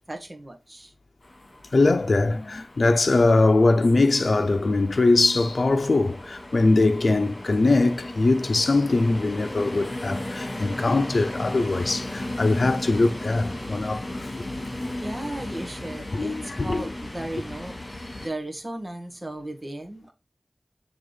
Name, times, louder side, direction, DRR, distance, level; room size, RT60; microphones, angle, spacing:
voice 1, 0.1-0.9 15.0-17.7 18.2-20.1, right 1 dB, 35° right, 1.6 m, -35 dB
sound 1, 1.2-18.3, left 1 dB, 50° left, 2.8 m, -36 dB
voice 2, 1.7-14.3 16.1-16.9, left 2 dB, 80° left, 0.6 m, -22 dB
6.9 x 3.6 x 3.9 m
wide cardioid pair, 70°, 0 cm